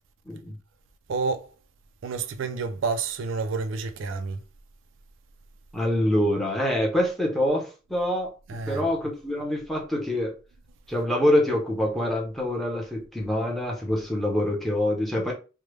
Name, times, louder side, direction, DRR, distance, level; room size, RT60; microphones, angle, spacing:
voice 1, 0.3-0.6 5.7-10.3 10.9-15.3, left 1 dB, ahead, 0.8 m, -25 dB
voice 2, 1.1-1.5 2.0-4.4 8.5-8.8, right 4 dB, 75° right, 0.4 m, -29 dB
3.3 x 2.2 x 3.1 m
head